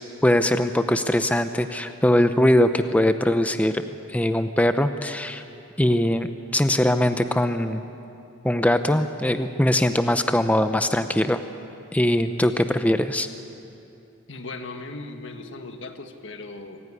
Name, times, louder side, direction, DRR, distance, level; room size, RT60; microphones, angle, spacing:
voice 1, 0.2-3.8 4.1-5.4 5.8-7.8 8.4-11.4 11.9-13.3, left 1 dB, 10° left, 9 dB, 0.6 m, -21 dB
voice 2, 14.3-16.8, left 2 dB, 75° left, 6 dB, 1.7 m, -37 dB
25.5 x 15.0 x 9.7 m, 2.7 s
head